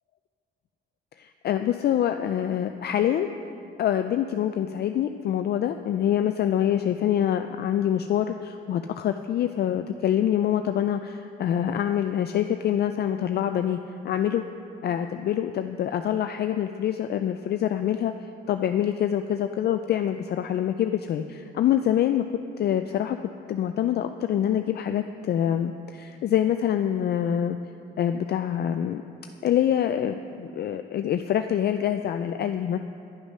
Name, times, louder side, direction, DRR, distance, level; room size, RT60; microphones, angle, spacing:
voice 1, 1.2-3.3 3.8-13.8 14.0-14.4 14.8-18.1 18.5-22.2 22.6-23.2 23.5-27.6 28.0-29.0 29.4-32.8, left 10 dB, 55° left, 7 dB, 0.4 m, -25 dB
9.6 x 8.0 x 5.4 m, 2.5 s
cardioid pair, 90°, 20 cm